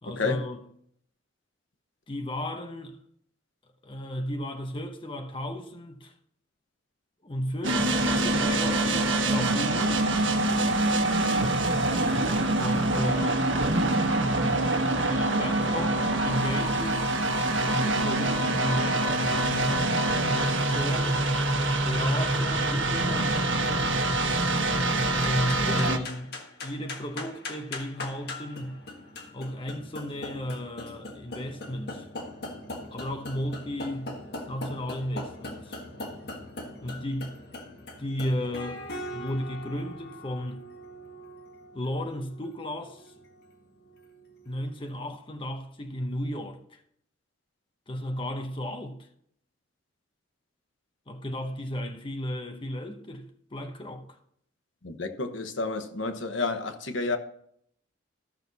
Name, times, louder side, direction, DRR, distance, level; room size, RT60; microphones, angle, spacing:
voice 1, 0.0-0.6 2.1-3.0 3.8-6.1 7.2-10.1 12.5-13.5 15.0-17.1 17.7-21.3 21.9-24.1 25.2-26.3 26.6-28.8 29.3-32.1 32.9-34.2 34.5-35.8 36.8-37.4 38.0-40.6 41.7-43.1 44.4-46.8 47.9-49.1 51.1-54.2, equal, 25° left, 0.9 m, -34 dB
sound 1, 7.6-26.0, right 2 dB, 80° right, 1.2 m, -25 dB
sound 2, 25.2-44.7, left 1 dB, 55° left, 1.5 m, -41 dB
voice 2, 54.8-57.2, left 3 dB, 85° left, 1.1 m, -30 dB
14.5 x 6.2 x 4.1 m
head